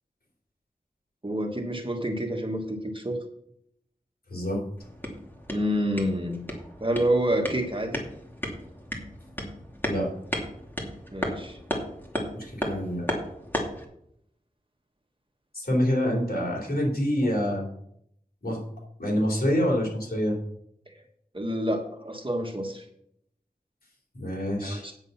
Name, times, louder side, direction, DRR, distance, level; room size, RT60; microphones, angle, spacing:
voice 1, 1.2-3.2 5.5-6.4 6.8-8.1 11.1-11.6 21.3-22.8 24.6-24.9, equal, 35° right, 2 dB, 1.6 m, -28 dB
voice 2, 4.3-4.6 9.9-10.1 12.3-13.1 15.5-17.6 18.4-18.6 19.0-20.4 24.1-24.9, equal, 80° left, -2 dB, 3.5 m, -26 dB
sound 1, 4.8-13.8, equal, 15° left, 2.5 m, -35 dB
9.1 x 7.9 x 5.7 m, 0.72 s
wide cardioid pair, 45°, 16 cm